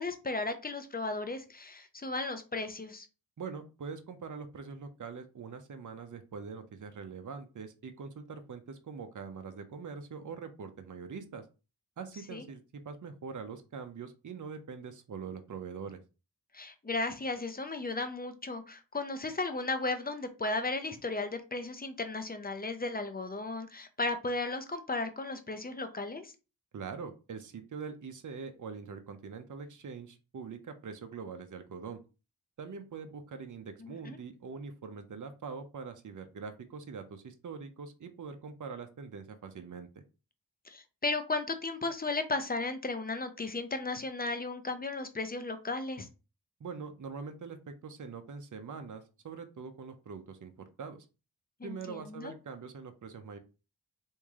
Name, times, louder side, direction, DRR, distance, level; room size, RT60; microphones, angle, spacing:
voice 1, 0.0-3.1 12.3-12.5 16.5-26.3 33.8-34.2 40.7-46.1 51.6-52.3, left 3 dB, 25° left, 8 dB, 0.7 m, -35 dB
voice 2, 3.4-11.4 12.0-16.0 26.7-32.0 32.6-39.9 46.6-51.0 51.6-53.4, right 5 dB, 50° right, 7 dB, 0.7 m, -43 dB
3.1 x 2.7 x 3.6 m, 0.31 s
cardioid pair, 60°, 39 cm